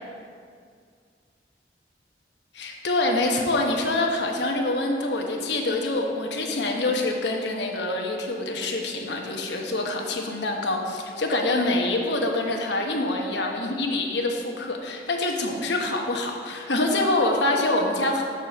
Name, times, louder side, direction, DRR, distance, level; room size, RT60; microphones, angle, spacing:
voice 1, 2.5-18.2, left 2 dB, 75° left, 1 dB, 1.0 m, -25 dB
6.7 x 4.3 x 6.5 m, 2.2 s
head